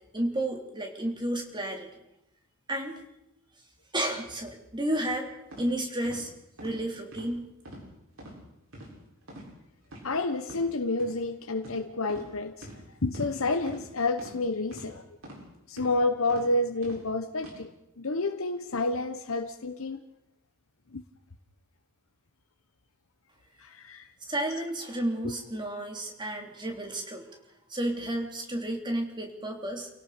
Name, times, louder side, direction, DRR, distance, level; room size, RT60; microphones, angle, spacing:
voice 1, 0.1-1.9 2.7-3.0 3.9-6.3 6.6-7.5 24.2-27.3 27.7-29.9, right 1 dB, 20° right, 3.5 m, -32 dB
sound 1, 5.5-5.7 6.0-6.2 6.6-6.8 7.1-7.3 7.6-7.9 8.2-8.3 8.7-8.9 9.3-9.5 9.8-10.0 10.4-10.6 11.0-11.1 11.6-11.8 12.1-12.3 12.6-12.8 13.1-13.3 13.7-13.8 14.2-14.3 14.7-14.9 15.2-15.4 15.8-15.9 16.3-16.4 16.8-17.0 17.4-17.5, right 1 dB, 75° right, 8.0 m, -44 dB
voice 2, 10.0-12.7 13.0-15.0 15.7-17.7 18.0-20.0 20.9-21.0 23.6-24.1 25.2-25.3, left 2 dB, 85° left, 1.1 m, -29 dB
29.0 x 17.5 x 5.1 m
head